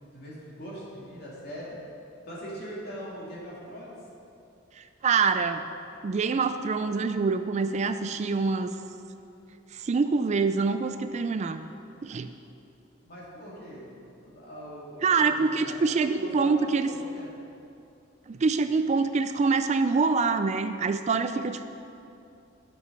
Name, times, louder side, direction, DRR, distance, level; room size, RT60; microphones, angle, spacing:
voice 1, 0.1-1.8 2.2-4.0 13.0-16.5 16.9-17.3, equal, 55° left, -6 dB, 2.8 m, -41 dB
voice 2, 4.8-5.6 6.0-8.8 9.7-11.6 12.0-12.3 15.0-16.9 18.3-21.7, right 4 dB, 35° right, 9 dB, 0.3 m, -25 dB
11.5 x 7.0 x 5.4 m, 2.7 s
head